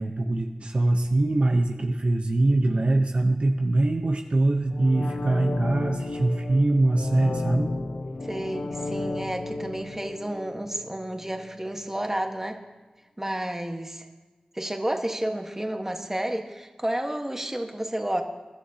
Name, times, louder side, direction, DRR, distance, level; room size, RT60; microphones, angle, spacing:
voice 1, 0.0-7.7, right 2 dB, 55° right, 3 dB, 0.8 m, -23 dB
sound 1, 4.7-11.5 11.8-11.9, left 2 dB, 85° left, 0.8 m, -33 dB
voice 2, 8.2-12.6 13.2-14.1 14.5-18.2, right 1 dB, 15° right, 4 dB, 1.3 m, -31 dB
22.0 x 11.5 x 2.8 m, 1.2 s
wide cardioid pair, 60°, 2 cm